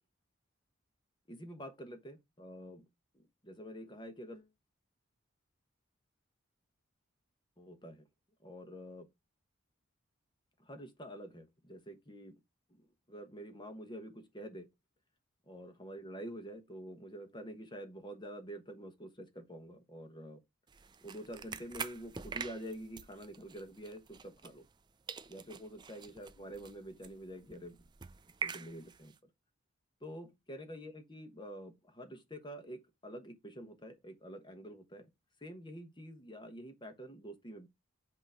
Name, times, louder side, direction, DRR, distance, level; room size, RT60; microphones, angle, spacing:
voice 1, 1.3-2.9 3.1-4.5 7.6-8.1 8.4-9.1 10.6-12.4 12.7-14.7 15.5-20.4 21.0-24.6 25.3-27.8 28.4-29.3 30.0-35.1 35.4-37.7, equal, 20° left, 1.1 m, -47 dB
sound 1, 20.7-24.8 25.1-29.2, right 5 dB, 20° right, 0.3 m, -46 dB
8.1 x 2.9 x 5.0 m
head